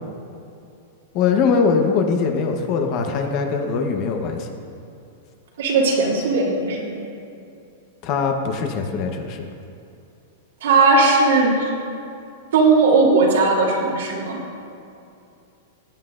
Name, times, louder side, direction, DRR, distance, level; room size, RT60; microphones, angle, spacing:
voice 1, 1.1-4.5 8.0-9.4, left 5 dB, 40° left, 4 dB, 1.0 m, -21 dB
voice 2, 5.6-6.9 10.6-11.5 12.5-14.4, right 3 dB, 85° right, -4 dB, 2.6 m, -17 dB
15.5 x 9.2 x 2.6 m, 2.6 s
supercardioid pair, 155°, 0 cm